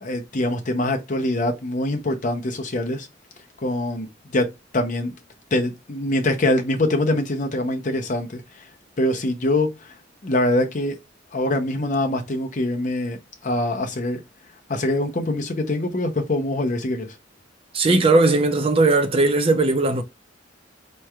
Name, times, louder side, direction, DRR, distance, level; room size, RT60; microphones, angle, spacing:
voice 1, 0.0-3.1 3.6-4.1 4.3-4.5 4.7-5.1 5.5-8.4 9.0-9.9 10.2-11.0 11.3-13.2 13.4-14.2 14.7-17.1, left 1 dB, 40° left, 0.7 m, -23 dB
voice 2, 17.7-20.0, right 2 dB, 30° right, 0.5 m, -18 dB
4.3 x 3.2 x 2.3 m
head